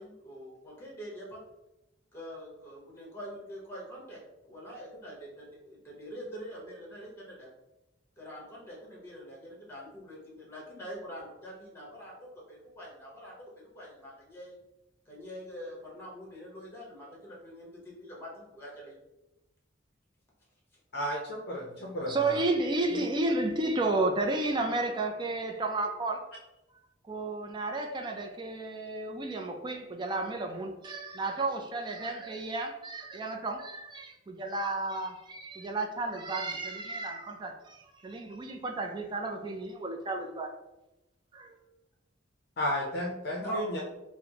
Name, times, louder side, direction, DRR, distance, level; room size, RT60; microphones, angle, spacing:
voice 1, 0.0-1.4 2.1-4.2 4.4-7.5 8.2-12.1 12.5-14.5 15.1-18.9 31.1-31.2 43.4-43.6, equal, 15° left, -4 dB, 1.0 m, -44 dB
voice 2, 20.9-22.4 22.9-23.0 42.6-43.8, left 1 dB, 55° left, -2 dB, 0.5 m, -33 dB
voice 3, 22.1-26.3 27.1-40.5 41.3-41.5, right 2 dB, 25° right, 3 dB, 0.3 m, -32 dB
4.0 x 2.0 x 2.8 m, 0.94 s
head